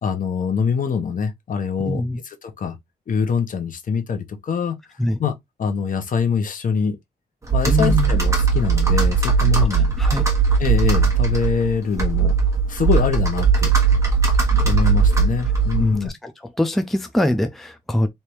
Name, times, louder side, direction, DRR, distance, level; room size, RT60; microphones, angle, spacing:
voice 1, 0.0-2.8 3.1-4.7 5.2-5.3 5.6-7.0 7.5-9.9 10.6-12.3 12.7-13.7 14.6-16.1, left 6 dB, 55° left, 1.0 m, -24 dB
voice 2, 1.8-2.2 5.0-5.2 7.7-8.1 9.7-10.3 15.8-16.3 16.6-18.1, left 1 dB, ahead, 0.5 m, -23 dB
Computer keyboard, 7.5-16.1, right 5 dB, 20° right, 1.4 m, -18 dB
3.4 x 2.7 x 4.6 m
wide cardioid pair, 155°, 17 cm